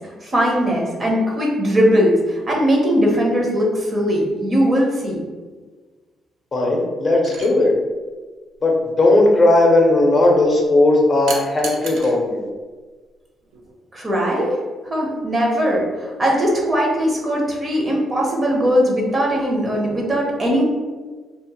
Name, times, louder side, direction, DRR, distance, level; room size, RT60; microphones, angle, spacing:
voice 1, 0.2-5.2 13.9-14.5 14.8-20.6, equal, 35° right, -2 dB, 0.8 m, -19 dB
voice 2, 6.5-7.7 8.6-12.5, left 2 dB, 35° left, 0 dB, 0.6 m, -16 dB
sound 1, 7.2-7.5 11.3-12.2 13.5-13.7, right 4 dB, 80° right, 0.4 m, -32 dB
2.9 x 2.0 x 2.8 m, 1.4 s
cardioid pair, 90°, 0 cm